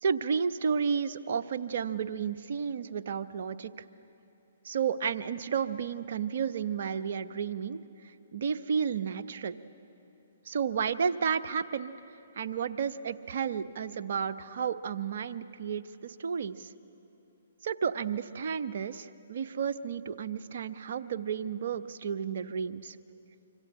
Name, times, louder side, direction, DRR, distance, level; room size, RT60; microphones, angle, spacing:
voice 1, 0.0-3.7 4.6-7.8 8.3-9.6 10.5-11.9 12.4-16.7 17.6-23.0, right 6 dB, 60° right, 9 dB, 1.0 m, -32 dB
25.5 x 25.0 x 8.9 m, 2.8 s
hypercardioid pair, 135°, 0 cm